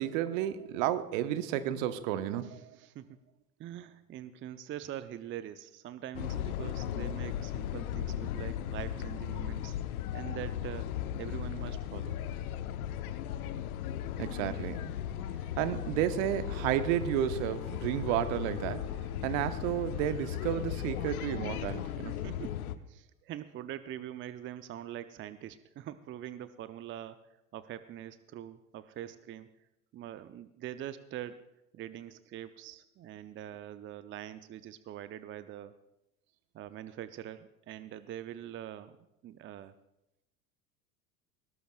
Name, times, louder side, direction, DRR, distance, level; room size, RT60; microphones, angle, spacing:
voice 1, 0.0-2.6 14.2-15.0 15.6-22.2, right 11 dB, 55° right, 1.1 m, -32 dB
voice 2, 2.4-3.2 3.6-9.8 10.1-12.2 22.1-22.6 22.9-27.2 27.5-29.5 29.9-31.4 31.7-35.8 36.5-39.0 39.2-39.7, right 11 dB, 25° right, 0.6 m, -43 dB
sound 1, 6.1-22.7, left 10 dB, 70° left, 0.9 m, -36 dB
20.5 x 18.0 x 2.4 m
figure-of-eight pair, 75°, 45 cm